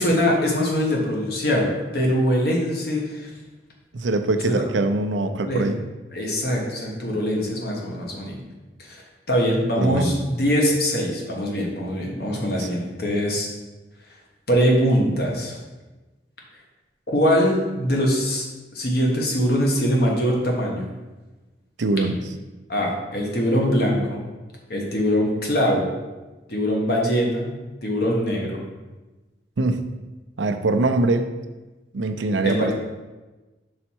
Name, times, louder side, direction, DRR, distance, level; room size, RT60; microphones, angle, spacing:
voice 1, 0.0-3.3 4.5-4.6 5.4-5.7 6.1-8.4 8.8-13.5 14.5-15.5 17.1-18.5 18.7-20.8 22.7-24.2 24.7-25.9 26.5-27.5 27.8-28.6 32.4-32.7, equal, 55° left, -1 dB, 1.2 m, -22 dB
voice 2, 3.9-5.8 9.8-10.2 12.6-12.7 21.8-22.2 29.6-29.8 30.4-31.3 31.9-32.7, right 2 dB, 80° right, 7 dB, 0.5 m, -23 dB
5.6 x 4.2 x 4.5 m, 1.2 s
head